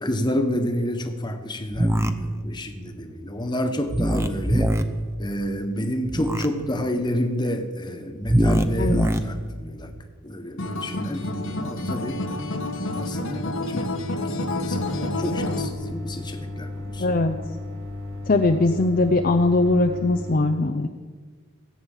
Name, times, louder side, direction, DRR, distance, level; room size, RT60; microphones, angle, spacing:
voice 1, 0.0-4.8 5.2-9.9 10.2-12.2 12.9-13.9 14.2-17.1, equal, 20° left, 5 dB, 1.3 m, -29 dB
sound 1, 1.7-2.1 3.9-4.8 6.1-6.5 8.3-9.2, equal, 10° right, 0.7 m, -21 dB
Acoustic guitar, 10.6-15.7, left 2 dB, 60° left, 1.3 m, -28 dB
sound 2, 14.7-20.3, left 2 dB, 70° right, 2.7 m, -35 dB
voice 2, 17.0-17.4 18.3-20.9, left 2 dB, 40° left, 5 dB, 0.6 m, -20 dB
17.0 x 8.6 x 7.3 m, 1.5 s
head